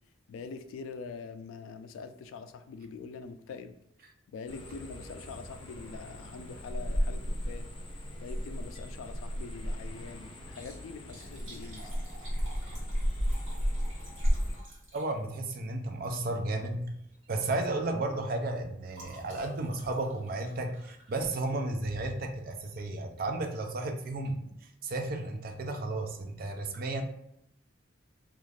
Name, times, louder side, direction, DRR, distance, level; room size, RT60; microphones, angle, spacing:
voice 1, 0.3-3.7 4.3-7.7 8.2-11.9, left 5 dB, 85° left, 10 dB, 0.3 m, -44 dB
sound 1, 4.5-14.6, equal, 25° left, 0.5 m, -34 dB
Liquid, 8.7-9.0 9.3-9.4 10.4-15.5 16.5-16.8 17.1-17.3 17.6-21.7 22.7-22.9 23.5-23.6 23.7-23.8, right 1 dB, 75° right, 1.2 m, -53 dB
voice 2, 14.9-17.0 17.3-27.0, right 2 dB, 45° right, 5 dB, 0.4 m, -33 dB
2.4 x 2.4 x 3.2 m, 0.77 s
head